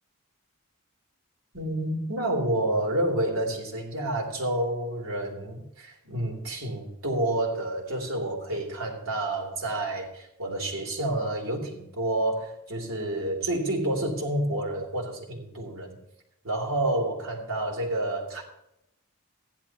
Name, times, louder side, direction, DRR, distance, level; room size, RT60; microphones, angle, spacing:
voice 1, 1.5-16.0 16.4-18.4, right 1 dB, 90° right, -1 dB, 3.1 m, -29 dB
15.5 x 11.0 x 3.0 m, 0.83 s
head